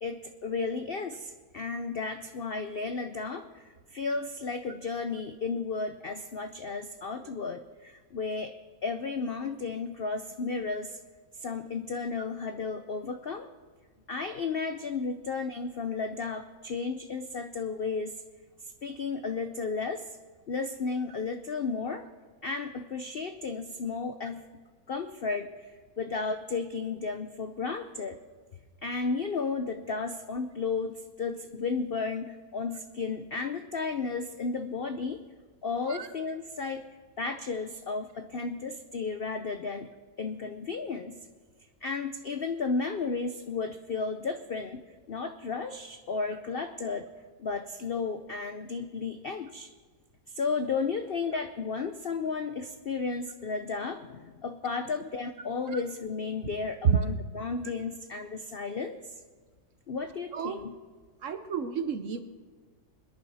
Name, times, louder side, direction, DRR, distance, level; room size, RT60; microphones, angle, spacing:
voice 1, 0.0-8.5 8.8-11.0 11.4-13.5 14.1-18.1 18.8-20.0 20.5-22.1 22.4-24.4 24.9-25.7 26.0-28.2 28.8-35.2 35.6-36.8 37.2-39.9 40.2-41.2 41.8-47.0 47.4-49.7 50.3-59.1 59.9-60.7, left 4 dB, 75° left, 7 dB, 0.5 m, -33 dB
voice 2, 61.2-62.2, right 7 dB, 55° right, 9 dB, 1.0 m, -29 dB
23.5 x 10.5 x 4.1 m, 1.5 s
omnidirectional pair, 1.9 m